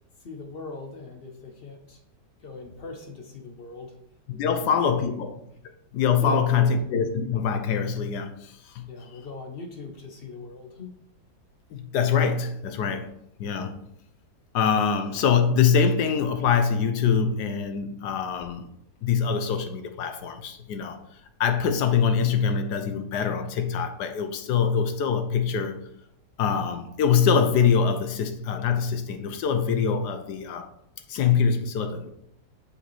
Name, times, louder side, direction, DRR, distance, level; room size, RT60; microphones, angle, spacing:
voice 1, 0.2-2.0 2.4-4.0 4.4-5.3 6.2-6.7 8.9-10.9, left 3 dB, 60° left, 0.6 m, -39 dB
voice 2, 4.3-5.3 5.9-8.9 11.7-13.1 13.4-13.8 14.5-18.7 19.0-21.0 21.4-25.8 26.4-30.7 31.1-32.1, left 6 dB, 75° left, 1.2 m, -24 dB
6.6 x 5.1 x 3.1 m
omnidirectional pair, 1.9 m